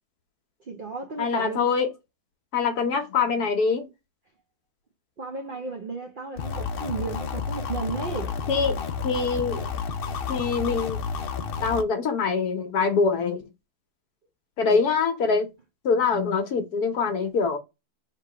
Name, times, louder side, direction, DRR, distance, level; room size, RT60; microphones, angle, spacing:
voice 1, 0.7-1.7 5.2-8.3, right 4 dB, 65° right, 0.5 m, -34 dB
voice 2, 1.2-1.9 2.5-3.9 8.5-9.7 10.3-11.0 11.6-13.5 14.6-15.5 15.8-17.6, left 5 dB, 75° left, 1.4 m, -24 dB
sound 1, 6.4-11.8, left 5 dB, 90° left, 0.5 m, -31 dB
3.5 x 3.0 x 4.8 m
omnidirectional pair, 1.7 m